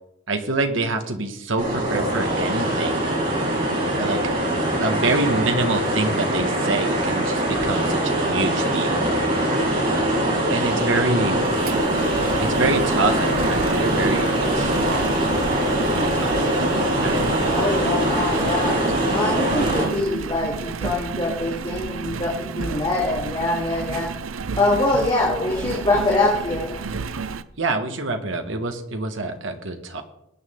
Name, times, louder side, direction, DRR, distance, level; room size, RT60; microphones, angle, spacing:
voice 1, 0.3-3.2 4.0-4.2 4.8-9.1 10.5-11.5 12.4-15.3 15.9-17.8 27.6-30.0, right 2 dB, 70° right, 6 dB, 1.7 m, -26 dB
sound 1, 1.6-19.8, right 1 dB, 45° right, 6.7 m, -22 dB
Engine, 11.4-27.4, right 5 dB, 90° right, 0.6 m, -32 dB
voice 2, 17.5-18.8 19.1-24.1 24.6-26.8, left 2 dB, 25° left, -4 dB, 2.9 m, -24 dB
21.0 x 9.1 x 3.9 m, 0.81 s
head